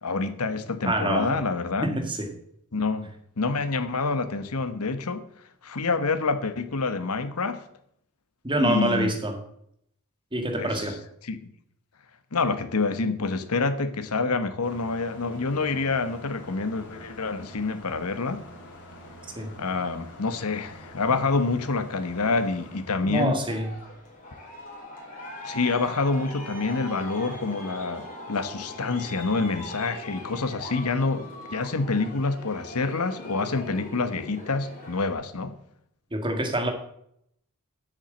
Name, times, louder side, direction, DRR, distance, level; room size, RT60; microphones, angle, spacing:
voice 1, 0.0-2.0 2.7-3.1 3.4-5.3 5.6-7.6 8.6-9.1 10.6-10.7 11.2-11.5 12.3-18.4 19.6-23.4 25.4-35.5, left 3 dB, 85° left, 11 dB, 1.1 m, -27 dB
voice 2, 0.9-1.4 1.8-2.3 8.4-9.4 10.3-11.0 19.4-19.5 23.0-23.8 36.1-36.7, right 1 dB, 20° right, 4 dB, 1.9 m, -26 dB
sound 1, 14.6-24.8, left 1 dB, 55° left, 3.5 m, -47 dB
Aircraft, 23.5-35.1, left 1 dB, 40° left, 3.8 m, -40 dB
8.0 x 7.4 x 7.8 m, 0.72 s
head